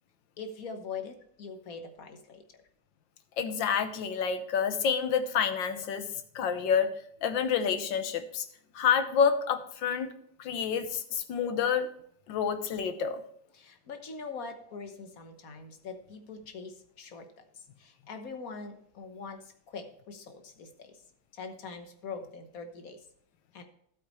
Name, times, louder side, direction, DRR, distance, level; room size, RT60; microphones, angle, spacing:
voice 1, 0.4-2.6 13.5-21.0 21.3-23.1 23.5-23.6, left 4 dB, 50° left, 7 dB, 1.5 m, -43 dB
voice 2, 3.4-6.1 6.4-6.9 7.2-8.5 8.8-10.1 10.4-11.9 12.3-13.2, left 7 dB, 85° left, 9 dB, 1.7 m, -28 dB
12.0 x 8.5 x 3.1 m, 0.66 s
omnidirectional pair, 2.0 m